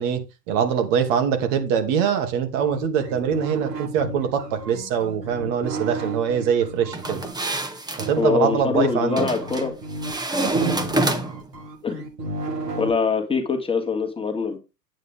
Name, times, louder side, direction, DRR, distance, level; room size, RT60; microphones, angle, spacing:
voice 1, 0.0-7.2 8.0-9.3 10.5-10.7, right 7 dB, 50° right, 2.8 m, -23 dB
sound 1, 2.6-7.3 8.0-12.9, right 2 dB, 90° right, 5.6 m, -33 dB
sound 2, 6.9-8.1 9.2-9.7 10.0-11.5, right 2 dB, 10° right, 1.4 m, -26 dB
voice 2, 8.2-9.7 11.8-12.0 12.7-14.6, left 5 dB, 10° left, 2.2 m, -23 dB
9.7 x 9.2 x 3.8 m
hypercardioid pair, 110°, 48 cm